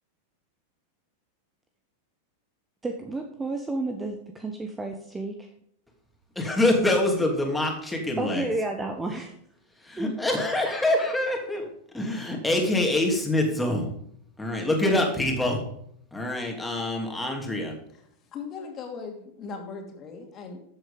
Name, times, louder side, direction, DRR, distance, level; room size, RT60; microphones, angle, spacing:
voice 1, 2.8-5.5 8.2-9.3 10.0-10.1, right 2 dB, 10° right, 4 dB, 1.2 m, -31 dB
voice 2, 6.3-8.5 9.8-11.7 11.9-13.9 14.4-15.6 16.1-17.7, left 1 dB, 5° left, 1 dB, 3.0 m, -25 dB
voice 3, 18.3-20.6, left 5 dB, 30° left, 2 dB, 2.8 m, -38 dB
13.5 x 7.8 x 5.2 m, 0.68 s
figure-of-eight pair, 90°, 0 cm